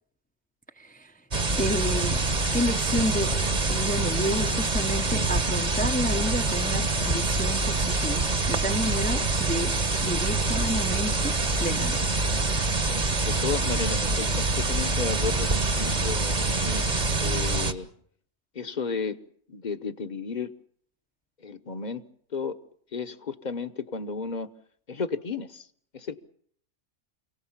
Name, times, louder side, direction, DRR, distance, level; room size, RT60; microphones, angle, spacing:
voice 1, 0.8-1.1 1.6-2.2 2.5-3.4 3.7-9.7 10.0-12.1, equal, 10° left, 6 dB, 0.8 m, -30 dB
sound 1, 1.3-17.7, right 3 dB, 40° right, 1.5 m, -25 dB
voice 2, 13.2-17.9 18.5-19.2 19.5-20.5 21.4-22.0 22.3-22.6 22.9-24.5 24.9-25.7 25.9-26.2, left 5 dB, 40° left, 10 dB, 1.2 m, -33 dB
28.5 x 17.5 x 7.4 m, 0.63 s
omnidirectional pair, 1.2 m